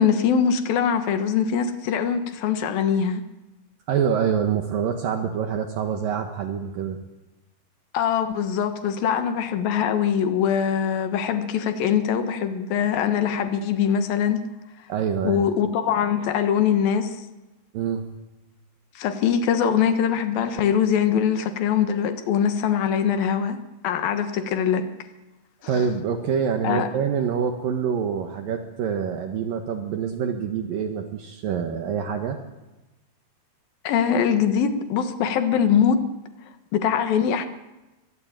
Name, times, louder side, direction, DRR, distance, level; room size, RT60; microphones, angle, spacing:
voice 1, 0.0-3.3 7.9-14.4 15.2-17.2 19.0-23.6 23.8-24.9 26.6-26.9 33.8-36.0 36.7-37.5, left 8 dB, 70° left, 9 dB, 3.1 m, -22 dB
voice 2, 3.9-7.0 14.9-15.4 17.7-18.1 25.7-32.4, right 7 dB, 65° right, 6 dB, 2.9 m, -26 dB
22.5 x 22.0 x 9.0 m, 1.1 s
omnidirectional pair, 4.6 m